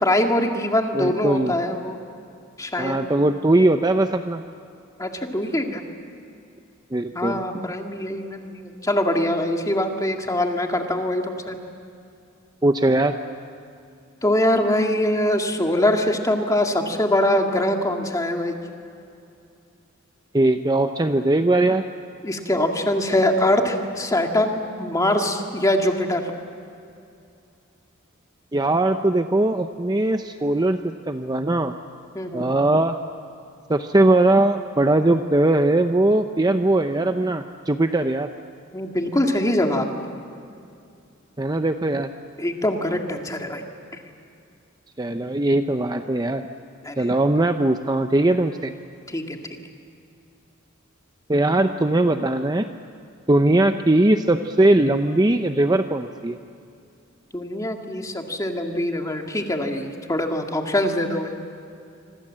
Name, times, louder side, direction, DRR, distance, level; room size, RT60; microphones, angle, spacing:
voice 1, 0.0-2.0 2.6-3.0 5.0-5.8 7.1-11.6 14.2-18.6 22.2-26.3 32.1-32.5 38.7-39.9 42.4-43.6 46.8-47.1 49.1-49.4 57.3-61.3, left 1 dB, 15° left, 3 dB, 2.2 m, -23 dB
voice 2, 0.9-1.6 2.8-4.4 6.9-7.4 12.6-13.2 20.3-21.9 28.5-31.7 32.3-33.0 33.7-38.3 41.4-42.1 45.0-46.5 47.0-48.7 51.3-52.7 53.3-56.4, right 2 dB, 20° right, 7 dB, 0.7 m, -20 dB
27.0 x 25.0 x 7.6 m, 2.5 s
head